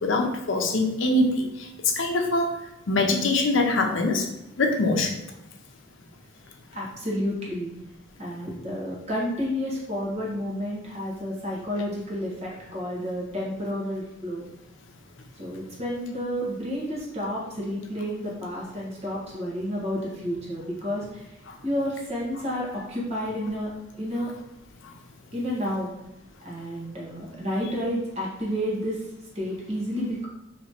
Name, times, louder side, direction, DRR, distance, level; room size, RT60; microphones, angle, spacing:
voice 1, 0.0-2.5 2.9-4.3 4.6-5.2 21.5-21.6 24.8-25.0, left 2 dB, 75° left, 3 dB, 0.6 m, -24 dB
voice 2, 6.7-7.7 8.2-14.5 15.4-21.4 21.6-24.3 25.3-25.9 26.4-29.0 29.3-30.3, equal, 35° right, -5 dB, 1.4 m, -30 dB
3.2 x 3.0 x 4.3 m, 0.89 s
head